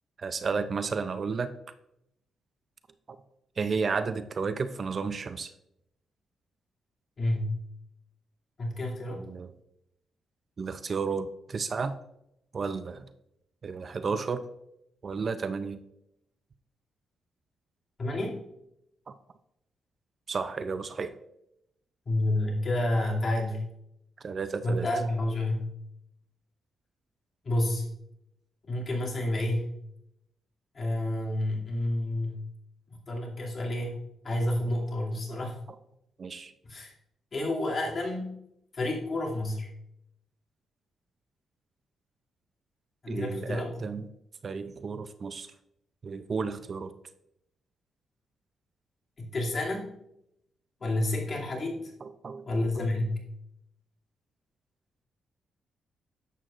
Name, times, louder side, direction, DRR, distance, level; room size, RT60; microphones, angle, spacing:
voice 1, 0.2-1.5 3.1-3.2 3.6-5.5 9.2-9.5 10.6-12.0 12.5-13.1 13.6-14.4 15.0-15.8 19.1-19.2 20.3-21.2 24.2-24.9 36.2-36.5 43.1-44.1 44.4-45.5 46.0-46.9 52.0-52.8, right 5 dB, 45° right, 11 dB, 0.5 m, -32 dB
voice 2, 7.2-7.6 8.6-9.3 18.0-18.4 22.1-23.6 24.6-25.7 27.4-27.9 28.7-29.7 30.7-32.5 33.1-35.6 36.6-36.9 37.3-38.3 38.7-39.7 43.0-43.7 49.2-49.9 50.8-51.9 52.4-53.2, left 1 dB, 40° left, -3 dB, 2.5 m, -29 dB
11.0 x 7.7 x 2.5 m, 0.80 s
cardioid pair, 100°, 0 cm